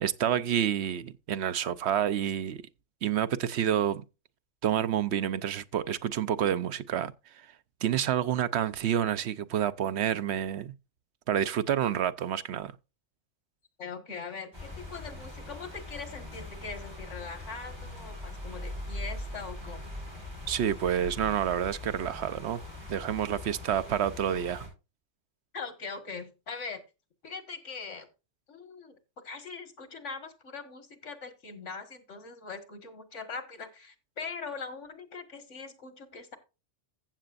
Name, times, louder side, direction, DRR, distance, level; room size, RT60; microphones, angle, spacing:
voice 1, 0.0-2.6 3.0-4.0 4.6-7.1 7.8-10.7 11.3-12.7 20.5-22.6 22.9-24.7, right 10 dB, 70° right, 0.9 m, -28 dB
voice 2, 13.8-19.9 25.5-26.8 27.2-28.1 28.5-28.9 29.2-36.4, left 4 dB, 90° left, 2.1 m, -41 dB
sound 1, 14.5-24.7, left 1 dB, 20° right, 6.1 m, -41 dB
15.0 x 7.7 x 2.5 m
omnidirectional pair, 1.2 m